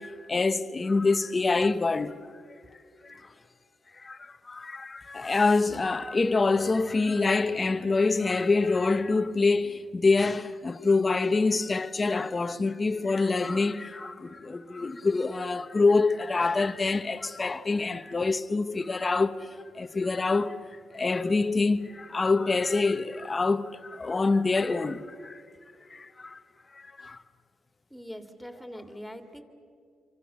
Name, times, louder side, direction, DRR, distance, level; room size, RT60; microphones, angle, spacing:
voice 1, 0.0-2.6 3.0-3.3 4.0-19.5 19.7-20.6 20.9-25.4 25.9-26.4 26.7-27.2, left 3 dB, 30° left, 1.0 m, -26 dB
voice 2, 27.9-29.4, equal, ahead, 2.9 m, -42 dB
28.0 x 25.0 x 7.1 m
cardioid pair, 90°, 0 cm